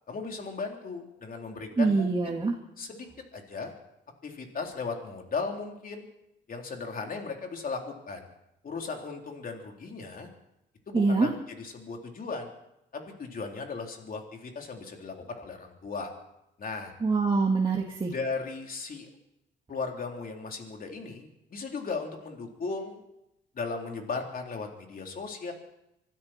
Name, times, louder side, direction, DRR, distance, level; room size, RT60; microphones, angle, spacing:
voice 1, 0.1-2.4 2.8-3.7 4.2-6.1 6.5-8.3 8.6-10.3 10.9-12.5 12.9-16.1 16.6-16.9 18.1-19.1 19.7-23.0 23.5-25.5, left 4 dB, 45° left, 2 dB, 3.7 m, -36 dB
voice 2, 1.8-2.5 10.9-11.3 17.0-18.1, right 3 dB, 25° right, -1 dB, 2.2 m, -24 dB
25.5 x 13.0 x 4.4 m, 0.84 s
cardioid pair, 90°, 20 cm